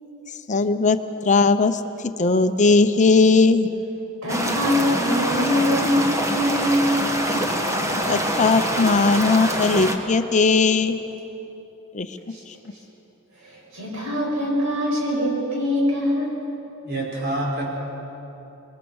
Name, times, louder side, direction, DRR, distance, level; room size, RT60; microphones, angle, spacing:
voice 1, 0.5-1.0 1.2-3.7 8.1-11.0 11.9-12.2, left 3 dB, 35° left, 9 dB, 0.7 m, -18 dB
voice 2, 4.2-7.0 12.3-12.4 13.4-16.4, left 1 dB, 70° right, -2 dB, 7.9 m, -23 dB
sound 1, 4.3-10.0, equal, 15° right, 1.6 m, -25 dB
voice 3, 16.8-17.7, right 1 dB, 50° right, -2 dB, 5.1 m, -26 dB
28.0 x 21.0 x 6.3 m, 3.0 s
head